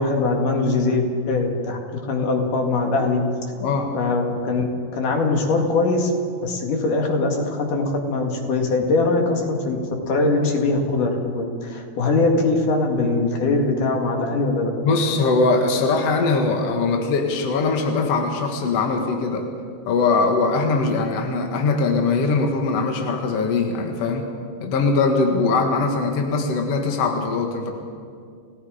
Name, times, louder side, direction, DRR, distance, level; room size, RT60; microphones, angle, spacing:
voice 1, 0.0-1.8 2.1-3.2 3.9-6.1 6.4-9.8 10.1-14.7, left 3 dB, 50° left, 2 dB, 3.2 m, -21 dB
voice 2, 3.6-3.9 14.8-19.4 19.8-24.2 24.6-27.7, left 3 dB, 70° left, 3 dB, 1.5 m, -21 dB
29.5 x 17.5 x 5.0 m, 2.2 s
omnidirectional pair, 5.4 m